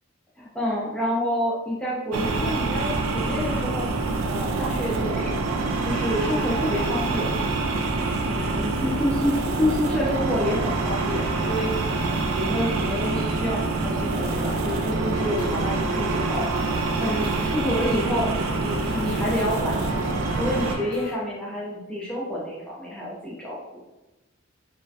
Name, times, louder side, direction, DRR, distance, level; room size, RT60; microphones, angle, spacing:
voice 1, 0.4-3.9 4.3-7.3 8.2-16.5 17.0-23.6, left 1 dB, 5° left, -6 dB, 0.4 m, -28 dB
sound 1, 2.1-20.8, right 3 dB, 80° right, 0.3 m, -26 dB
sound 2, 13.8-21.1, left 3 dB, 85° left, 0.4 m, -40 dB
2.3 x 2.1 x 2.6 m, 1.0 s
head